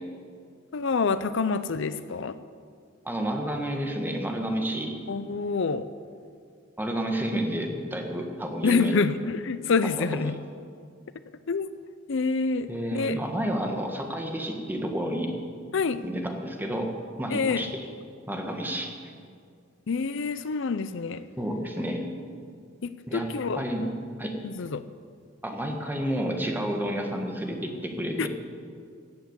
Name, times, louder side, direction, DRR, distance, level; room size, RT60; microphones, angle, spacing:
voice 1, 0.7-2.4 5.1-5.9 8.6-10.3 11.5-11.8 12.1-13.2 15.7-16.0 17.3-17.6 19.9-21.2 22.8-23.9 24.4-24.8 28.2-28.3, left 4 dB, 65° left, 13 dB, 0.5 m, -27 dB
voice 2, 3.0-5.0 6.8-9.0 10.0-10.2 12.7-15.3 16.0-17.8 18.3-18.9 21.4-22.0 23.1-23.3 23.6-23.8 24.2-24.3 25.4-28.3, right 1 dB, 10° right, 2 dB, 1.6 m, -30 dB
16.5 x 8.1 x 8.1 m, 2.2 s
head